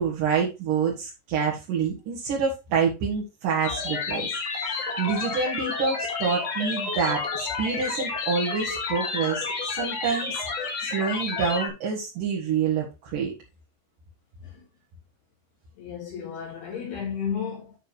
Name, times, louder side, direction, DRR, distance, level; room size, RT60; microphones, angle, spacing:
voice 1, 0.0-4.3 4.6-10.3 10.8-13.3, right 6 dB, 55° right, 2.9 m, -27 dB
sound 1, 3.6-11.7, left 4 dB, 45° left, 2.3 m, -30 dB
voice 2, 15.8-17.8, left 7 dB, 65° left, 3.8 m, -33 dB
9.6 x 6.2 x 3.3 m
omnidirectional pair, 5.1 m